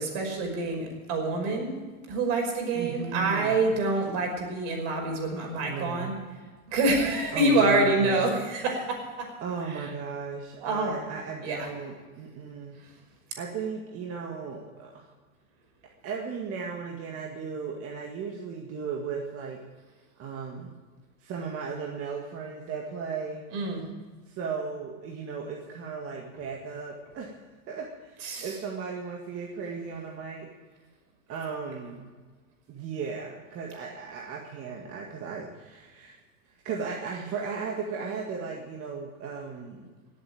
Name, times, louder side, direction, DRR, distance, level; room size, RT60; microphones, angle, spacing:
voice 1, 0.0-1.7 2.1-6.1 6.7-9.3 9.7-9.8 10.6-11.0 11.4-11.7 23.5-23.8 28.2-28.5, right 2 dB, 55° right, 2 dB, 5.6 m, -26 dB
voice 2, 2.7-3.6 5.7-6.2 7.3-8.2 9.4-12.8 13.4-15.1 16.0-19.6 20.2-20.8 21.2-23.4 24.3-27.4 27.7-30.5 31.3-32.1 32.7-36.2 36.5-39.9, right 5 dB, 35° right, 0 dB, 1.9 m, -36 dB
17.5 x 8.2 x 8.8 m, 1.4 s
supercardioid pair, 135°, 42 cm